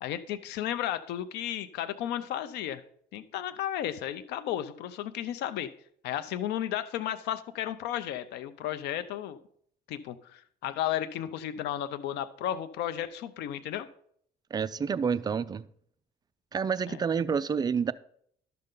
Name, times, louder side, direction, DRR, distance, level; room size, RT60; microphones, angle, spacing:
voice 1, 0.0-2.8 3.1-5.7 6.0-9.4 9.9-13.9 16.9-17.0, left 11 dB, 80° left, 0.6 m, -33 dB
voice 2, 14.5-15.7 16.5-17.9, right 6 dB, 25° right, 0.4 m, -28 dB
11.5 x 6.7 x 3.8 m
cardioid pair, 110°, 17 cm